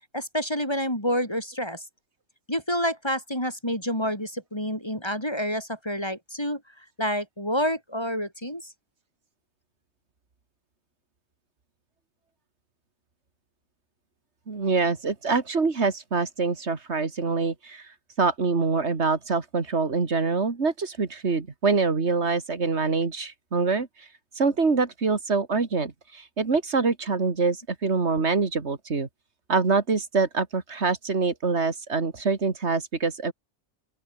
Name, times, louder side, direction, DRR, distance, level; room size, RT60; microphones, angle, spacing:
voice 1, 0.1-1.9 2.5-8.7, equal, 20° left, 7.1 m, -28 dB
voice 2, 14.5-17.8 18.2-23.9 24.4-29.1 29.5-33.3, right 4 dB, 60° right, 2.5 m, -25 dB
open air
omnidirectional pair, 1.3 m